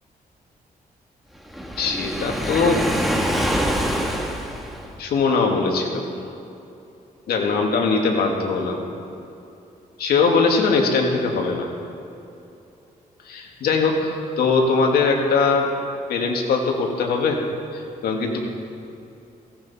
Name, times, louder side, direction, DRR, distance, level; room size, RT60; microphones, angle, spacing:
Waves surf, 1.5-5.0, equal, ahead, 1.8 m, -25 dB
voice 1, 1.8-2.9 3.6-3.7 4.0-4.1 5.0-6.0 7.3-8.8 10.0-11.7 13.2-15.7 16.1-17.4 17.7-18.4, left 4 dB, 85° left, 1 dB, 2.1 m, -21 dB
16.5 x 15.5 x 4.2 m, 2.8 s
cardioid pair, 95°, 15 cm